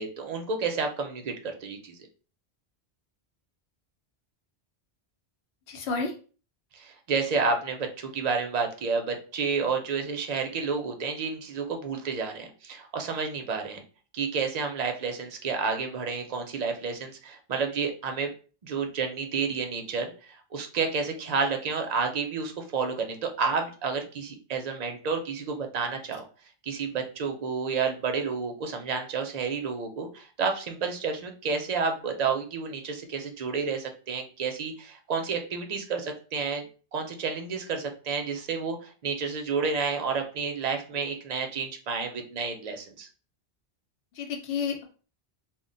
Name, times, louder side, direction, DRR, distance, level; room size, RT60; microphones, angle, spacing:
voice 1, 0.0-2.0 6.7-13.8 14.1-18.3 18.6-26.2 26.6-36.7 36.9-43.1, right 5 dB, 50° right, 4 dB, 0.5 m, -30 dB
voice 2, 5.7-6.1 44.1-44.8, left 5 dB, 85° left, 3 dB, 0.9 m, -30 dB
2.1 x 2.1 x 3.8 m, 0.38 s
omnidirectional pair, 1.1 m